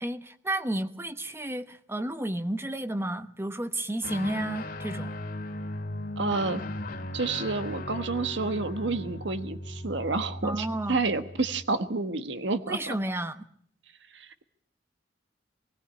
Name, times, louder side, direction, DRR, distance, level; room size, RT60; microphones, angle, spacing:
voice 1, 0.0-5.1 10.4-11.0 12.7-13.4, right 1 dB, 15° right, 1.0 m, -32 dB
Guitar, 4.0-11.7, left 1 dB, 50° left, 2.1 m, -37 dB
voice 2, 6.2-6.6 7.1-12.9 14.1-14.4, right 3 dB, 70° right, 1.2 m, -29 dB
21.5 x 16.0 x 8.8 m
head